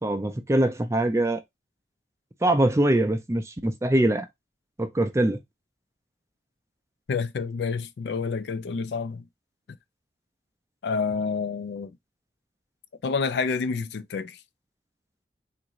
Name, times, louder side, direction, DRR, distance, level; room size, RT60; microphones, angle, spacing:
voice 1, 0.0-1.4 2.4-4.3 4.8-5.4, right 1 dB, 15° right, 0.4 m, -23 dB
voice 2, 7.1-9.2 10.8-11.9 13.0-14.4, left 5 dB, 75° left, 0.4 m, -28 dB
3.7 x 2.5 x 3.0 m
head